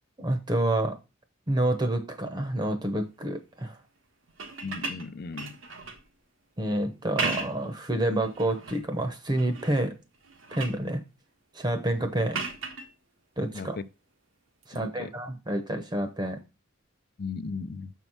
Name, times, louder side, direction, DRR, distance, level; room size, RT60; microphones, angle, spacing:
voice 1, 0.2-1.0 1.5-3.8 6.6-10.0 10.5-11.0 11.5-12.4 13.4-13.8 14.7-16.4, right 1 dB, 20° right, 0.8 m, -28 dB
sound 1, 4.3-6.1 7.0-7.7 8.2-8.8 9.4-9.8 10.1-10.9 12.3-12.9 14.6-14.8, right 4 dB, 85° right, 1.3 m, -35 dB
voice 2, 4.6-5.5 13.5-13.8 14.7-15.1 17.2-17.9, left 4 dB, 50° left, 0.5 m, -36 dB
7.0 x 4.7 x 5.5 m
head